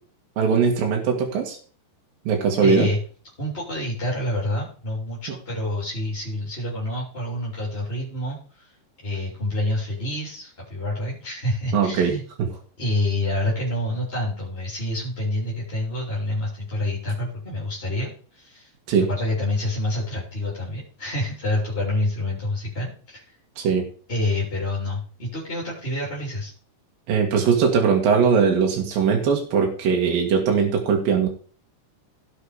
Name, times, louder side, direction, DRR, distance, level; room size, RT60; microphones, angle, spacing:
voice 1, 0.4-1.6 2.3-2.9 11.7-12.1 12.4-12.5 18.9-19.1 23.6-23.8 27.1-31.3, right 6 dB, 65° right, 1 dB, 3.4 m, -20 dB
voice 2, 2.6-3.0 3.4-8.7 9.0-12.2 12.8-18.7 19.1-23.3 24.1-26.5, left 1 dB, 15° left, -5 dB, 3.0 m, -27 dB
16.5 x 6.9 x 5.0 m, 0.42 s
omnidirectional pair, 4.5 m